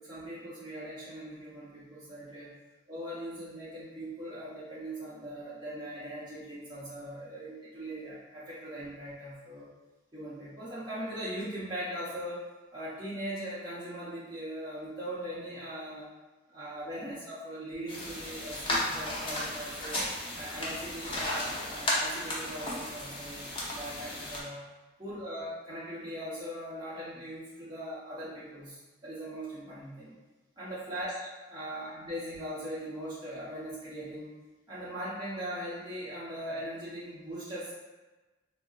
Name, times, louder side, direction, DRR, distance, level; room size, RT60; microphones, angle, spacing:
voice 1, 0.0-2.5 2.9-9.7 10.1-12.5 12.7-16.1 16.5-20.0 20.3-24.6 25.0-30.1 30.6-34.3 34.7-37.7, equal, 25° right, -11 dB, 0.8 m, -40 dB
sound 1, 17.9-24.4, left 1 dB, 30° left, 0.6 m, -34 dB
3.6 x 2.0 x 2.3 m, 1.2 s
head